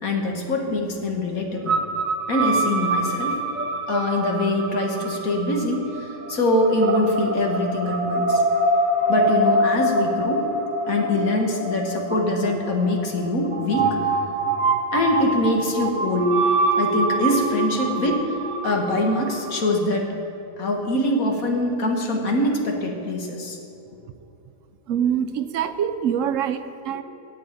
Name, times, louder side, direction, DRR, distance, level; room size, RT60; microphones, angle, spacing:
voice 1, 0.0-1.8 2.3-3.4 3.9-8.4 9.1-10.4 10.9-14.0 14.9-16.3 16.8-18.3 18.6-20.1 20.6-23.6 25.3-25.4, left 1 dB, 90° left, 2 dB, 1.8 m, -23 dB
sound 1, 1.7-19.8, right 1 dB, 40° right, 0.9 m, -25 dB
voice 2, 24.9-27.0, right 8 dB, 70° right, 10 dB, 0.9 m, -24 dB
7.9 x 7.8 x 8.5 m, 2.8 s
omnidirectional pair, 1.4 m